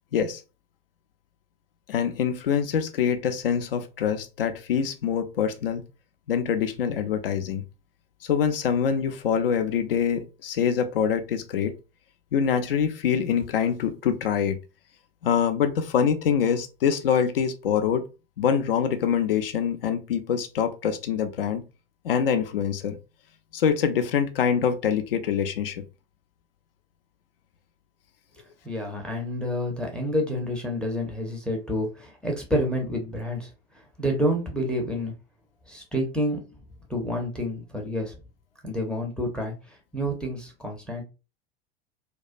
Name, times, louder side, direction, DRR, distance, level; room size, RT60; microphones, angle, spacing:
voice 1, 1.9-5.8 6.3-7.6 8.2-11.7 12.3-14.6 15.2-18.1 18.4-21.6 22.0-23.0 23.5-25.8, left 7 dB, 70° left, 8 dB, 0.4 m, -25 dB
voice 2, 28.6-33.5 34.0-35.1 35.7-36.4 36.9-38.2 38.6-39.5 39.9-41.0, equal, 5° left, 1 dB, 0.5 m, -28 dB
2.3 x 2.2 x 2.4 m, 0.30 s
figure-of-eight pair, 80°, 30 cm